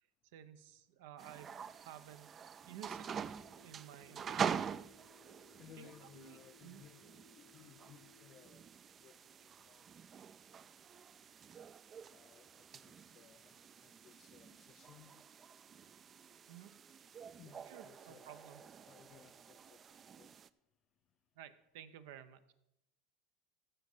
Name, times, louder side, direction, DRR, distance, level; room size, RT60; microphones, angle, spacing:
voice 1, 0.3-3.1 3.6-4.7 5.8-6.8 16.5-16.7 17.7-18.6 21.4-22.5, right 10 dB, 75° right, 0.8 m, -54 dB
sound 1, 1.2-20.5, right 7 dB, 30° right, 0.3 m, -46 dB
sound 2, 3.0-8.9, left 6 dB, 70° left, 0.8 m, -66 dB
voice 2, 5.5-7.0 7.3-8.7 9.0-9.8 12.1-15.2 17.4-20.3, left 9 dB, 40° left, 0.5 m, -61 dB
15.5 x 5.3 x 5.5 m
supercardioid pair, 135°, 0 cm